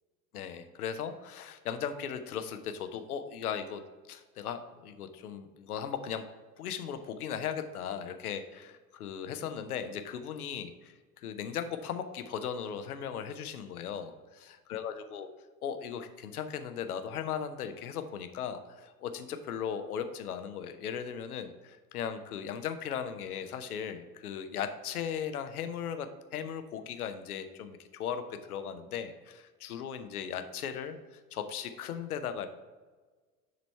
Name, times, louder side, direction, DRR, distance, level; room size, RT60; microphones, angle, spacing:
voice 1, 0.3-6.2 6.6-14.1 14.7-15.3 15.6-28.2 28.5-32.5, left 8 dB, 70° left, 9 dB, 0.8 m, -37 dB
9.5 x 4.0 x 4.4 m, 1.3 s
figure-of-eight pair, 70°, 46 cm